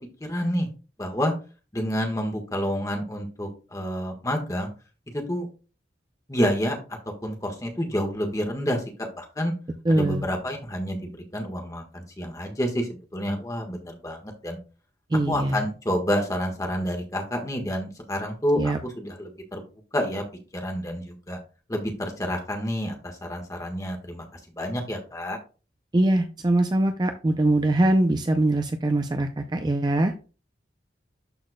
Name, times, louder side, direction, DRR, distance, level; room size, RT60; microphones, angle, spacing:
voice 1, 0.2-0.7 1.0-1.3 1.7-4.7 5.1-5.5 6.3-6.8 7.2-9.5 9.9-14.6 15.3-19.6 19.9-20.2 20.5-21.4 21.7-25.4, equal, 20° left, 3 dB, 1.3 m, -29 dB
voice 2, 9.8-10.2 15.1-15.6 18.6-18.8 25.9-30.1, right 1 dB, 25° right, 6 dB, 0.4 m, -22 dB
12.5 x 4.2 x 2.2 m, 0.34 s
head